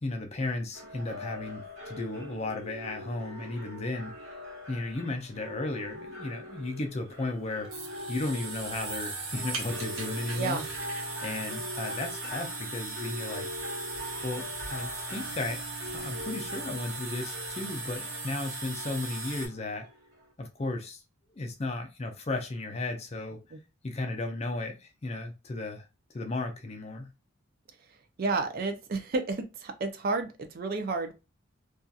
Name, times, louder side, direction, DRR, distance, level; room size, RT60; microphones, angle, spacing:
voice 1, 0.0-4.1 4.7-7.7 8.1-10.6 11.2-13.5 14.2-19.9 20.4-21.0 21.4-23.4 23.8-27.1, left 2 dB, 30° left, 0.4 m, -35 dB
sound 1, 0.7-20.3, left 1 dB, 60° right, 1.2 m, -43 dB
sound 2, 7.1-19.5, right 3 dB, 80° right, 1.0 m, -38 dB
voice 2, 10.3-10.7 23.5-23.6 28.2-31.1, right 3 dB, 45° right, 0.4 m, -31 dB
2.7 x 2.4 x 2.3 m
head